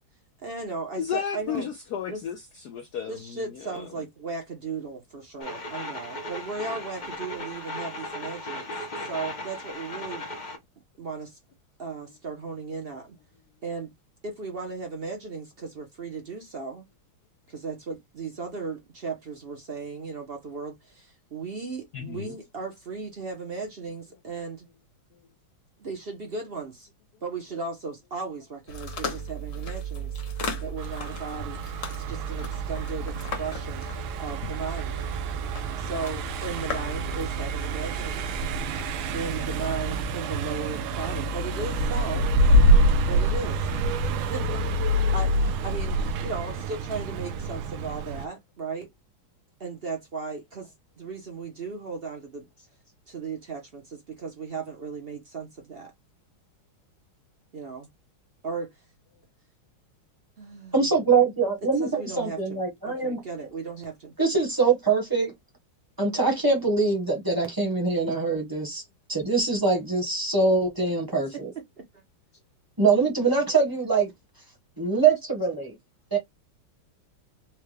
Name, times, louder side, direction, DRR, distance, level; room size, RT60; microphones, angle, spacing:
voice 1, 0.4-1.7 2.1-2.2 3.1-8.7 9.0-10.2 11.0-11.4 11.8-13.2 13.6-13.9 14.2-16.8 17.5-24.7 25.8-26.9 27.2-30.2 30.6-31.6 32.0-33.9 34.2-35.0 35.8-38.4 39.1-42.3 43.1-43.7 44.2-44.6 45.1-48.9 49.6-52.5 53.1-55.9 57.5-57.9 58.4-58.8 60.4-60.9 61.8-64.1 71.8-72.0, right 4 dB, 65° right, 0.5 m, -36 dB
voice 2, 1.0-3.9 21.9-22.3, left 8 dB, 85° left, 0.8 m, -33 dB
sound 1, 5.4-10.6, left 1 dB, 65° left, 0.4 m, -36 dB
sound 2, 28.7-40.0, right 4 dB, 50° left, 1.0 m, -35 dB
Car passing by, 30.8-48.3, right 1 dB, 80° right, 1.4 m, -26 dB
voice 3, 60.7-63.2 64.2-65.3 66.0-68.8 69.1-71.5 72.8-74.1 74.8-75.7 76.1-76.2, right 4 dB, 15° right, 0.7 m, -23 dB
4.5 x 2.2 x 3.2 m
omnidirectional pair, 2.3 m